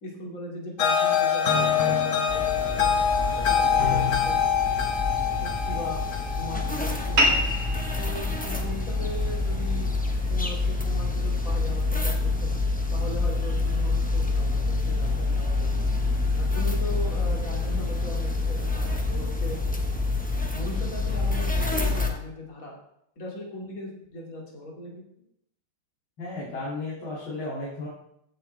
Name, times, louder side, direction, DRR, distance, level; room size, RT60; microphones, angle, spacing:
voice 1, 0.0-4.4 5.4-7.3 8.0-9.9 10.3-12.5 12.9-15.8 16.3-19.6 20.5-22.7 23.2-24.9, left 1 dB, 40° left, -2 dB, 2.9 m, -38 dB
sound 1, 0.8-7.9, left 7 dB, 55° left, 1.8 m, -25 dB
sound 2, 2.3-22.1, left 3 dB, 5° left, 0.8 m, -27 dB
sound 3, 7.2-12.2, equal, 70° right, 2.9 m, -30 dB
voice 2, 26.2-27.9, left 2 dB, 75° left, -7 dB, 3.5 m, -34 dB
15.0 x 8.8 x 3.4 m, 0.75 s
omnidirectional pair, 2.3 m